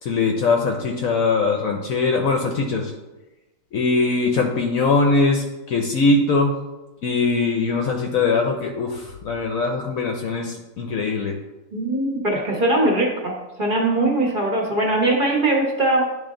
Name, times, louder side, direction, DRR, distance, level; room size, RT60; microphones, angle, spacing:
voice 1, 0.0-2.9 3.7-6.6 7.0-11.4, left 3 dB, 65° left, 2 dB, 1.0 m, -21 dB
voice 2, 11.7-16.0, right 2 dB, 35° right, -2 dB, 1.2 m, -21 dB
10.0 x 3.5 x 3.8 m, 1.1 s
omnidirectional pair, 1.8 m